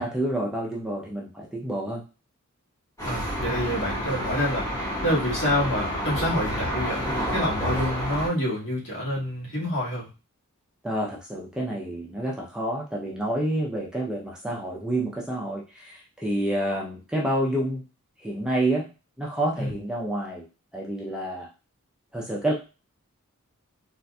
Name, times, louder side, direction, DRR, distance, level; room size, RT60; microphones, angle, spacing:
voice 1, 0.0-2.0 10.8-17.8 18.2-18.9 19.2-20.5 20.7-21.5 22.1-22.5, right 1 dB, 5° right, -3 dB, 0.5 m, -28 dB
voice 2, 3.0-4.7 5.0-10.1 19.5-19.7, equal, 55° left, -6 dB, 1.5 m, -27 dB
sound 1, 3.0-8.3, equal, 15° left, 1.5 m, -29 dB
3.9 x 2.5 x 2.2 m, 0.31 s
head